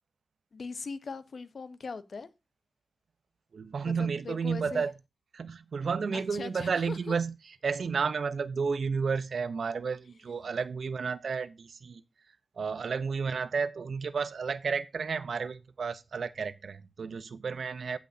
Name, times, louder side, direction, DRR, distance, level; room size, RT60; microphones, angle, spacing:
voice 1, 0.5-2.3 3.9-4.8 6.1-7.1, left 4 dB, 70° left, 1.0 m, -40 dB
voice 2, 3.5-4.9 5.3-7.4 7.6-12.0 12.6-18.0, right 5 dB, 75° right, 0.8 m, -32 dB
15.0 x 6.1 x 2.7 m
wide cardioid pair, 100°, 0 cm